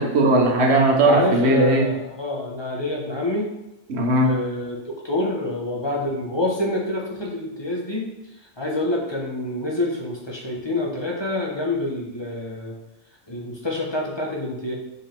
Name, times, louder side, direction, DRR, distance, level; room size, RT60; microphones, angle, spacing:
voice 1, 0.0-1.9 3.9-4.3, right 2 dB, 80° right, 1 dB, 1.3 m, -18 dB
voice 2, 1.0-3.5 4.2-8.1 8.6-12.7 13.3-14.8, left 1 dB, 25° left, -3 dB, 1.2 m, -27 dB
5.3 x 5.0 x 4.5 m, 0.91 s
omnidirectional pair, 1.1 m